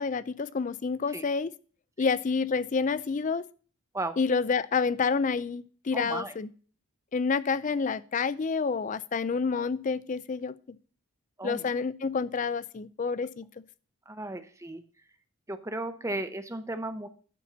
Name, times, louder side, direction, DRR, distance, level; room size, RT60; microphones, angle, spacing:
voice 1, 0.0-1.5 2.0-3.5 4.2-6.5 7.1-10.8 11.4-13.5, left 5 dB, 35° left, 0.4 m, -28 dB
voice 2, 5.9-6.3 11.4-11.7 14.1-14.8 15.5-17.1, right 2 dB, 15° right, 0.7 m, -35 dB
11.5 x 4.3 x 7.2 m
head